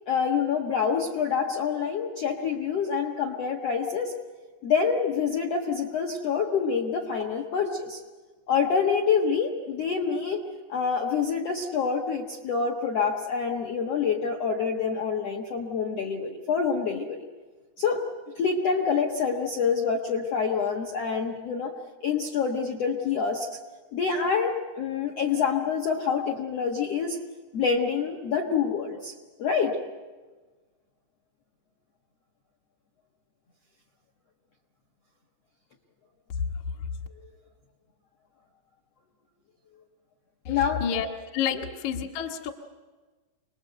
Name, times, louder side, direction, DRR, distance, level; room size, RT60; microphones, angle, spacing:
voice 1, 0.1-4.1 4.6-8.0 8.5-10.4 10.7-17.2 17.8-18.0 18.4-21.7 22.0-23.5 23.9-27.2 27.5-29.1 29.4-29.8 40.5-40.8, left 6 dB, 80° left, 1 dB, 1.3 m, -26 dB
voice 2, 40.5-41.1 41.3-42.5, left 8 dB, 65° left, 1 dB, 2.0 m, -29 dB
27.0 x 20.5 x 7.9 m, 1.3 s
omnidirectional pair, 5.1 m